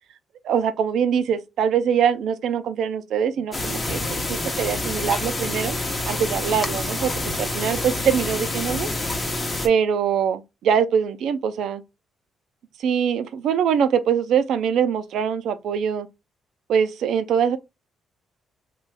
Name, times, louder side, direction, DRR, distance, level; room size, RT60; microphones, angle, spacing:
voice 1, 0.4-4.0 4.3-5.8 6.1-8.9 9.6-11.8 12.8-16.1 16.7-17.6, right 7 dB, 75° right, 0.4 m, -23 dB
sound 1, 3.5-9.7, left 2 dB, 25° left, 0.7 m, -27 dB
3.1 x 2.2 x 3.4 m
cardioid pair, 90°, 0 cm